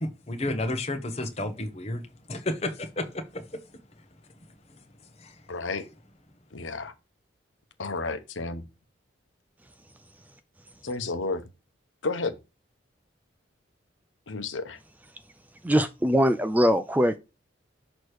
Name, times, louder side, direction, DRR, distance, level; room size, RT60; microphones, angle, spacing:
voice 1, 0.0-2.0 2.3-3.4 5.2-5.3, left 1 dB, 35° left, 1.0 m, -31 dB
voice 2, 5.5-5.9 6.5-6.9 7.8-8.6 10.8-11.4 12.0-12.3 14.3-14.8, left 3 dB, 80° left, 1.0 m, -31 dB
voice 3, 15.6-17.2, equal, 10° right, 0.4 m, -22 dB
6.4 x 3.0 x 4.8 m
head